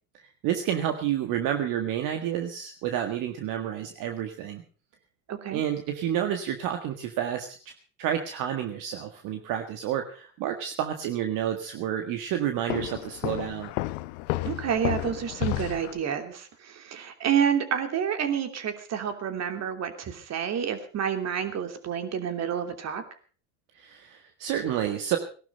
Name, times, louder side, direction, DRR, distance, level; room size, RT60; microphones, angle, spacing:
voice 1, 0.1-4.6 5.5-13.7 23.7-25.2, right 10 dB, 60° right, 6 dB, 1.8 m, -30 dB
voice 2, 5.3-5.6 14.4-23.0, right 8 dB, 45° right, 7 dB, 3.0 m, -29 dB
Walk footsteps, 12.7-16.0, left 19 dB, 80° left, 0.9 m, -32 dB
18.5 x 12.0 x 5.4 m, 0.40 s
supercardioid pair, 90°, 36 cm